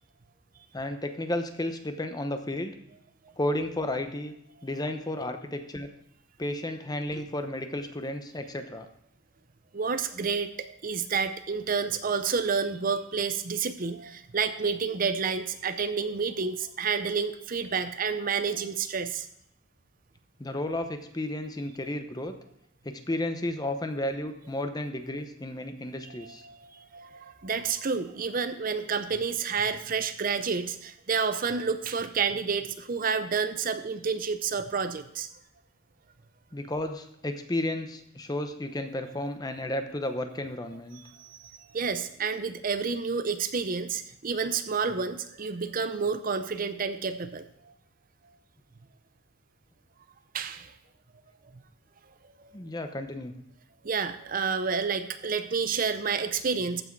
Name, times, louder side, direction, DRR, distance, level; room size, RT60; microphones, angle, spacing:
voice 1, 0.7-2.7 3.4-4.3 4.6-5.9 6.4-8.9 20.4-22.3 22.8-26.4 36.5-41.0 52.5-53.3, left 1 dB, 20° left, 7 dB, 0.8 m, -33 dB
voice 2, 9.7-19.3 26.0-35.3 41.1-41.4 41.7-47.7 50.3-50.7 53.8-56.8, right 5 dB, 45° right, 10 dB, 0.6 m, -29 dB
14.5 x 6.3 x 4.6 m, 0.71 s
head